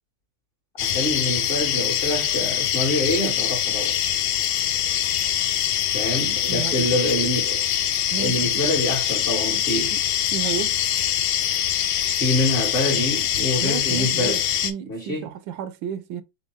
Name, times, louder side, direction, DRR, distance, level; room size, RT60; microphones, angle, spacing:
sound 1, 0.8-14.7, left 10 dB, 90° left, 1.4 m, -24 dB
voice 1, 0.8-4.0 5.9-7.7 8.2-9.9 12.2-14.4 14.9-15.3, left 1 dB, 35° left, 1.2 m, -26 dB
voice 2, 6.5-7.1 8.1-8.6 9.9-10.0 10.3-10.8 13.6-16.2, right 9 dB, 80° right, 1.3 m, -32 dB
3.9 x 3.6 x 3.1 m
omnidirectional pair, 2.1 m